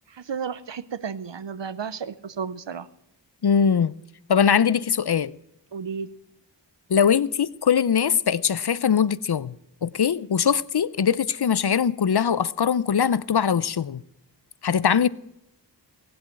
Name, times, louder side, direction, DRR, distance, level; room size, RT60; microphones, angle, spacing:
voice 1, 0.1-2.9 5.7-6.1, right 6 dB, 90° right, 0.8 m, -33 dB
voice 2, 3.4-3.9 4.3-5.4 6.9-9.6 9.8-14.0 14.6-15.1, left 7 dB, 65° left, 0.6 m, -21 dB
18.5 x 7.9 x 7.6 m
wide cardioid pair, 45°, 42 cm